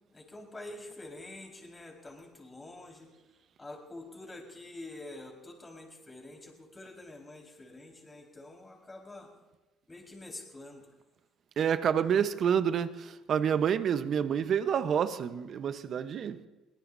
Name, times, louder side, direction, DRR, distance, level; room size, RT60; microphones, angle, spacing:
voice 1, 0.1-3.1 3.6-9.3 9.9-10.9, left 2 dB, 20° left, 4.7 m, -47 dB
voice 2, 11.6-16.5, right 8 dB, 55° right, 1.0 m, -28 dB
23.5 x 18.5 x 2.7 m
supercardioid pair, 85°, 0 cm